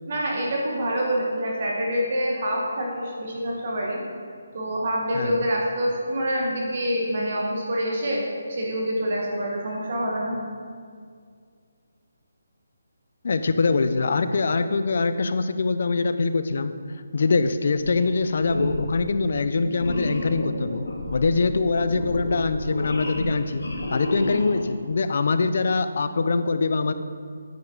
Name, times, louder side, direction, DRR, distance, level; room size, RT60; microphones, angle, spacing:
voice 1, 0.1-4.0 4.5-10.4, equal, 40° right, -2 dB, 1.4 m, -26 dB
voice 2, 5.1-5.5 13.2-16.7 17.1-20.8 21.1-23.6 23.9-26.9, left 4 dB, 50° left, 11 dB, 0.5 m, -23 dB
sound 1, 17.8-18.1 18.4-19.0 19.8-24.8, left 1 dB, 75° left, 1.6 m, -31 dB
9.4 x 6.9 x 3.8 m, 2.1 s
hypercardioid pair, 170°, 0 cm